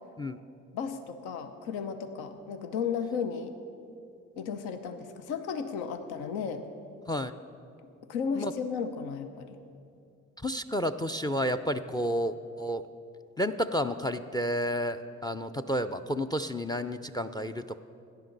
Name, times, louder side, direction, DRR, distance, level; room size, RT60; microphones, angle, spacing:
voice 1, 0.7-3.5 4.4-6.7 7.8-9.6, left 6 dB, 80° left, 9 dB, 0.8 m, -34 dB
voice 2, 10.4-12.8 13.4-17.8, equal, 10° left, 11 dB, 0.4 m, -31 dB
17.0 x 10.5 x 4.0 m, 2.5 s
hypercardioid pair, 50°, 38 cm